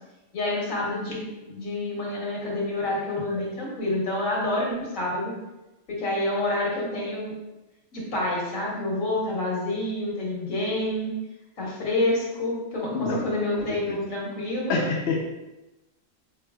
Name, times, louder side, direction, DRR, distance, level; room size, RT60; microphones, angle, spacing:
voice 1, 0.3-5.3 6.0-7.3 7.9-11.1 11.6-14.8, left 1 dB, 80° left, -4 dB, 1.5 m, -28 dB
voice 2, 12.9-13.2 13.7-14.0 14.7-15.2, left 4 dB, 60° left, -1 dB, 0.8 m, -27 dB
5.0 x 3.2 x 2.3 m, 1.0 s
omnidirectional pair, 1.4 m